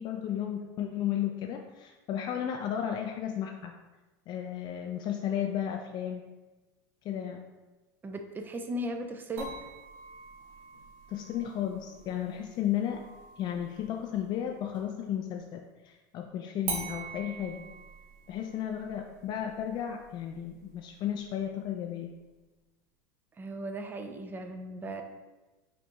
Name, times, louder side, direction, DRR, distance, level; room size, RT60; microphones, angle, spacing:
voice 1, 0.0-3.7 4.3-6.3 7.0-7.4 11.1-13.1 13.4-17.6 18.3-22.1, left 10 dB, 40° left, 3 dB, 0.4 m, -34 dB
voice 2, 8.0-9.5 23.4-25.0, right 1 dB, 15° right, 6 dB, 0.5 m, -37 dB
sound 1, 9.4-15.0 16.7-21.7, right 4 dB, 70° right, 1.2 m, -45 dB
5.0 x 3.4 x 2.9 m, 1.2 s
supercardioid pair, 110°, 11 cm